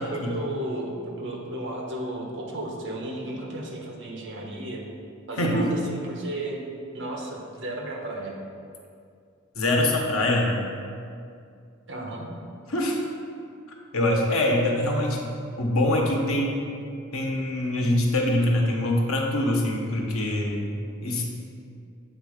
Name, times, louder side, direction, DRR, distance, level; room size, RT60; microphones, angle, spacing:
voice 1, 0.0-4.8 5.3-6.6 6.9-8.3 11.9-12.3, right 1 dB, 60° right, -1 dB, 1.1 m, -34 dB
voice 2, 5.4-5.7 9.5-10.5 12.7-13.0 13.9-15.2 15.6-16.6 17.1-20.6 21.0-21.3, left 1 dB, 80° left, 0 dB, 1.1 m, -24 dB
7.9 x 3.7 x 5.0 m, 2.3 s
head